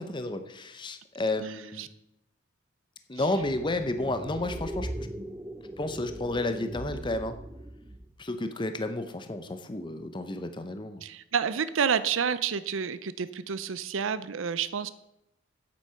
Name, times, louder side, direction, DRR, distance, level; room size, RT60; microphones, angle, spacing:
voice 1, 0.0-1.9 3.1-5.1 5.8-7.3 8.2-11.0, left 2 dB, 25° left, 9 dB, 0.7 m, -31 dB
voice 2, 1.4-1.9 3.1-3.3 11.0-14.9, right 7 dB, 75° right, 14 dB, 0.5 m, -29 dB
sound 1, 3.4-8.2, right 1 dB, 15° right, 0.6 m, -39 dB
9.3 x 8.5 x 5.7 m, 0.82 s
head